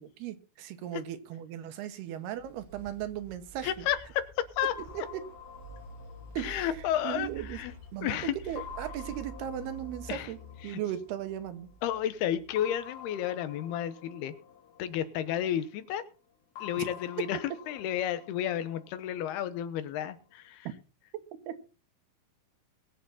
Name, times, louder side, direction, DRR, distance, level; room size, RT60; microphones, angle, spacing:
voice 1, 0.0-3.9 4.9-5.0 6.4-6.7 7.0-7.6 7.9-10.4 10.6-11.7 21.5-21.6, right 10 dB, 85° right, 10 dB, 3.1 m, -37 dB
sound 1, 2.1-12.9, right 3 dB, 45° right, 5.1 m, -49 dB
voice 2, 3.6-5.1 6.4-7.7 8.0-8.3 10.1-10.3 10.6-10.8 11.8-14.3 14.8-16.0 16.6-20.7, left 11 dB, 85° left, 13 dB, 3.0 m, -32 dB
sound 2, 4.6-7.9 8.6-11.5 12.6-15.7 16.6-19.7, left 8 dB, 55° left, 3.0 m, -49 dB
21.0 x 7.7 x 4.1 m, 0.35 s
omnidirectional pair, 4.5 m